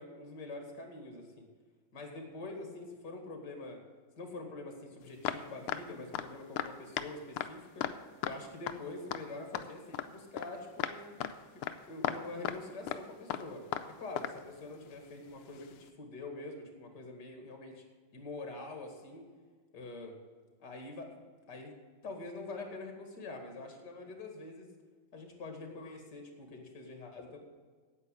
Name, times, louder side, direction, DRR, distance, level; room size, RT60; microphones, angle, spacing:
voice 1, 0.0-1.4 1.9-3.8 4.2-7.8 8.2-11.1 11.5-11.6 11.9-17.8 18.1-19.2 19.7-20.1 20.6-21.2 21.5-21.8 22.0-24.7 25.1-27.4, left 2 dB, 50° left, 4 dB, 2.7 m, -45 dB
sound 1, 5.3-5.8 6.1-6.3 6.6-6.7 7.0-7.1 7.4-7.5 7.8-8.0 8.2-8.4 8.7-8.8 9.1-9.2 9.6-10.1 10.4-10.5 10.8-11.0 11.2-11.4 11.6-11.8 12.0-12.6 12.9-13.0 13.3-13.9 14.2-14.4 15.6-15.7, left 11 dB, 90° left, 1.6 m, -35 dB
9.6 x 8.5 x 8.0 m, 1.5 s
omnidirectional pair, 2.4 m